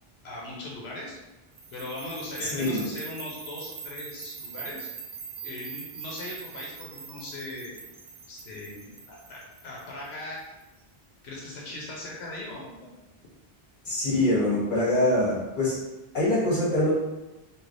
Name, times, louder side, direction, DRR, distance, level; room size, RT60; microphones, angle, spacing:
voice 1, 0.2-1.2 1.7-4.9 5.4-7.8 8.3-10.4 11.2-12.9, left 2 dB, 90° left, -4 dB, 0.9 m, -39 dB
sound 1, 1.6-10.6, right 6 dB, 85° right, 0.8 m, -42 dB
voice 2, 2.4-2.8 13.8-15.7 16.1-16.9, left 1 dB, 50° left, -7 dB, 1.3 m, -24 dB
3.2 x 2.4 x 2.5 m, 1.0 s
omnidirectional pair, 1.0 m